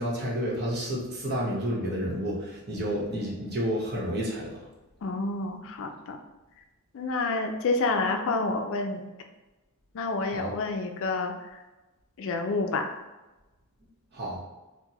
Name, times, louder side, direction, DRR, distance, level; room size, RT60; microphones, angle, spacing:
voice 1, 0.0-4.5 10.3-10.5 14.1-14.4, equal, 50° right, -4 dB, 1.0 m, -30 dB
voice 2, 5.0-6.2 6.9-9.1 9.9-11.4 12.2-13.0, left 3 dB, 60° left, 5 dB, 0.4 m, -28 dB
4.5 x 2.1 x 2.8 m, 1.1 s
head